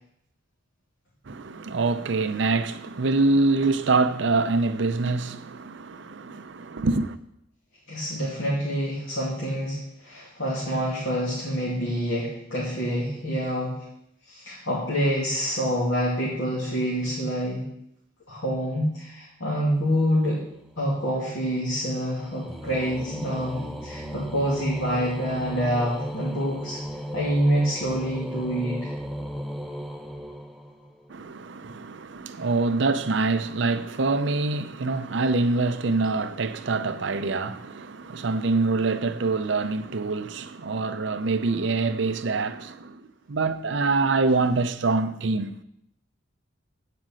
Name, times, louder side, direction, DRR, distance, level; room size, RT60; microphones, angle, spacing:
voice 1, 1.3-7.2 31.1-43.0 43.3-45.6, right 3 dB, 60° right, 0.5 m, -25 dB
voice 2, 7.9-13.8 14.3-17.6 18.3-20.4 20.8-26.8 27.1-28.9, equal, 80° left, 2.6 m, -27 dB
sound 1, 20.2-31.1, equal, ahead, 0.5 m, -36 dB
8.6 x 5.0 x 7.6 m
head